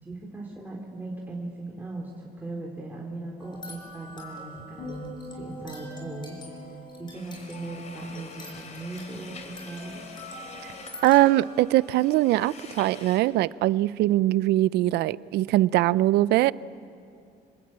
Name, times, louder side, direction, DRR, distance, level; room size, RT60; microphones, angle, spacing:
voice 1, 0.0-2.1 2.4-10.1, right 2 dB, 10° right, -3 dB, 3.5 m, -38 dB
sound 1, 3.4-12.3, left 1 dB, 25° left, 5.8 m, -46 dB
sound 2, 4.8-9.2 9.5-9.9, equal, 85° left, 7.2 m, -45 dB
sound 3, 7.1-13.2, left 4 dB, 45° left, 3.6 m, -46 dB
voice 2, 11.0-16.5, right 16 dB, 80° right, 20 dB, 0.5 m, -22 dB
27.0 x 20.5 x 8.7 m, 2.5 s
cardioid pair, 110°, 17 cm